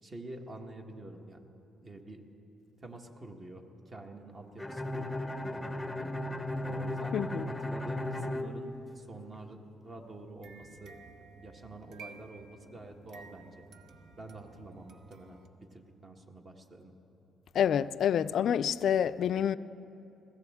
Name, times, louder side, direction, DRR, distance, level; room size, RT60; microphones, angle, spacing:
voice 1, 0.0-1.4 1.8-2.3 2.8-6.1 6.6-7.2 7.5-11.0 11.4-13.5 14.2-16.9, right 2 dB, 35° right, 1.4 m, -47 dB
Bowed string instrument, 4.6-9.4, left 1 dB, 10° left, 0.6 m, -36 dB
voice 2, 7.1-7.5 17.5-19.6, left 9 dB, 65° left, 0.3 m, -28 dB
sound 1, 10.4-15.5, right 5 dB, 70° right, 0.9 m, -54 dB
20.5 x 16.0 x 3.6 m
cardioid pair, 90°, 0 cm